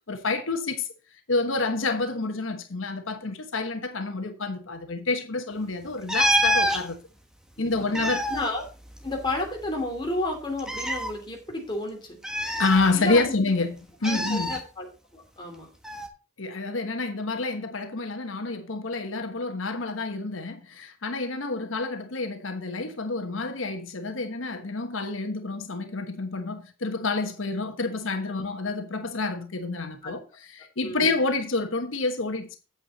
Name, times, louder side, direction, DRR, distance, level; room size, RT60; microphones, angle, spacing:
voice 1, 0.1-0.9 1.3-7.0 7.6-8.3 12.6-14.6 16.4-32.6, left 3 dB, 90° left, 1.2 m, -28 dB
sound 1, 6.1-6.8 7.7-9.4 9.7-9.8 10.6-11.1 12.2-13.3 14.0-14.6 15.8-16.1, equal, 5° right, 1.3 m, -26 dB
voice 2, 7.6-8.6 9.0-12.2 12.9-13.3 14.0-14.9 15.1-15.7 30.0-30.2 30.8-31.1, left 2 dB, 25° left, 3.0 m, -32 dB
8.6 x 8.2 x 4.2 m
head